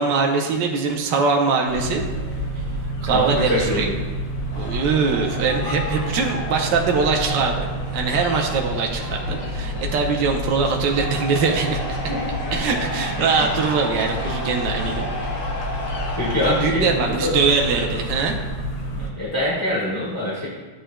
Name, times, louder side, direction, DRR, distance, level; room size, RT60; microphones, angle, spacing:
voice 1, 0.0-2.0 2.6-3.9 4.6-12.0 12.5-15.1 16.4-18.4, right 5 dB, 75° right, 1 dB, 1.4 m, -22 dB
sound 1, 1.7-19.1, right 1 dB, 70° left, 1.5 m, -29 dB
voice 2, 3.1-4.0 12.1-12.6 13.2-13.5 16.2-17.4 18.9-20.5, left 1 dB, 15° left, -7 dB, 1.4 m, -25 dB
sound 2, 4.5-16.6, left 1 dB, 85° left, 2.0 m, -33 dB
11.0 x 7.7 x 2.2 m, 1.3 s
omnidirectional pair, 2.0 m